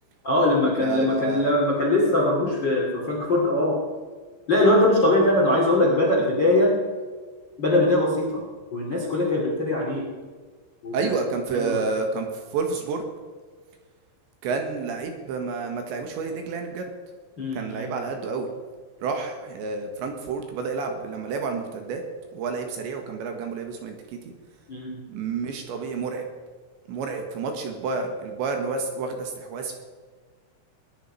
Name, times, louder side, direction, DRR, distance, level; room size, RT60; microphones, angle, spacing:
voice 1, 0.2-3.9 4.5-6.8 7.6-8.4 8.7-10.1 10.8-11.1 11.5-11.8 17.4-18.0 24.7-25.1, left 1 dB, 35° left, -2 dB, 2.0 m, -21 dB
voice 2, 0.8-1.5 6.2-6.3 10.9-13.1 14.4-16.9 17.6-18.5 19.0-22.0 22.3-24.2 25.1-26.3 26.9-29.8, right 4 dB, 70° right, 4 dB, 3.5 m, -29 dB
19.5 x 10.5 x 5.7 m, 1.5 s
omnidirectional pair, 5.9 m